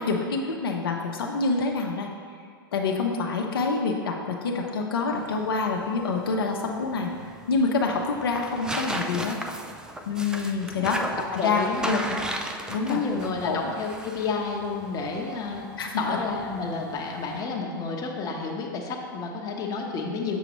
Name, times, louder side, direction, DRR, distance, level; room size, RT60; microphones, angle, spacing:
voice 1, 0.0-2.1 2.7-7.1 7.5-9.4 10.1-12.2 12.7-13.0 13.4-13.7 15.8-16.2, left 4 dB, 75° left, 1 dB, 0.7 m, -27 dB
sound 1, 5.2-17.4, right 1 dB, 5° right, 0.4 m, -37 dB
voice 2, 11.4-11.9 12.9-15.6 16.0-20.4, left 4 dB, 30° left, 0 dB, 0.9 m, -30 dB
6.8 x 6.2 x 3.0 m, 2.1 s
hypercardioid pair, 105°, 12 cm